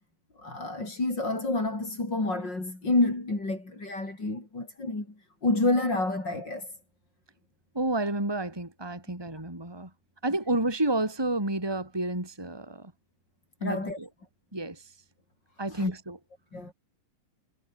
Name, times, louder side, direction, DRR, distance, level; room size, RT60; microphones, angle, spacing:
voice 1, 0.4-5.1 5.4-6.7 13.6-14.0 15.7-15.9 16.5-16.7, left 2 dB, 30° left, 7.4 m, -28 dB
voice 2, 7.7-9.9 10.2-12.9 13.6-14.1 14.5-14.9 15.6-16.2, right 2 dB, 5° right, 4.6 m, -30 dB
omnidirectional pair, 3.8 m